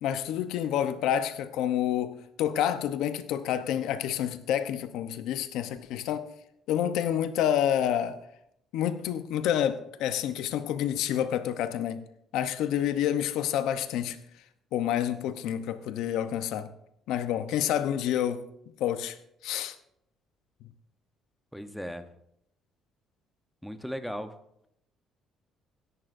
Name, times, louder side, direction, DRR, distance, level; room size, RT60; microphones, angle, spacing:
voice 1, 0.0-6.3 6.7-8.2 8.7-12.0 12.3-14.2 14.7-16.7 17.1-18.4 18.8-19.2 19.4-19.7, left 10 dB, 80° left, 0.8 m, -28 dB
voice 2, 21.5-22.1 23.6-24.3, equal, ahead, 0.8 m, -37 dB
16.5 x 11.0 x 2.6 m
cardioid pair, 120°, 0 cm